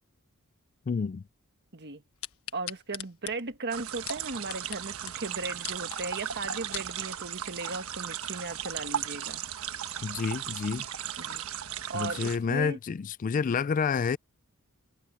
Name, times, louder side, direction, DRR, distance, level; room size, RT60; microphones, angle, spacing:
voice 1, 0.9-1.2 10.0-10.9 11.9-14.2, left 5 dB, 40° left, 0.3 m, -29 dB
sound 1, 2.2-4.8 5.1-5.2 5.5-6.0 6.5-6.9 7.5-7.6, left 12 dB, 75° left, 1.4 m, -40 dB
voice 2, 2.5-9.4 11.2-11.4 11.9-12.8 13.4-13.6, right 3 dB, 50° right, 1.7 m, -37 dB
sound 2, 3.7-12.4, right 9 dB, 75° right, 1.4 m, -36 dB
head